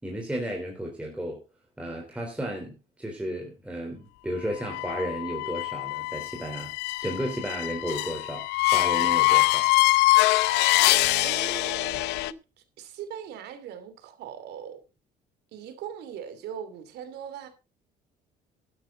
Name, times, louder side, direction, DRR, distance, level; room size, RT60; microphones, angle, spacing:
voice 1, 0.0-1.4 1.8-6.7 7.0-8.5 8.7-9.7, right 1 dB, 5° right, 3.8 m, -33 dB
sound 1, 4.6-12.3, left 20 dB, 90° left, 0.6 m, -24 dB
voice 2, 11.2-12.3 12.8-14.8 15.5-17.5, right 8 dB, 80° right, 2.8 m, -40 dB
12.0 x 12.0 x 3.9 m
cardioid pair, 110°, 17 cm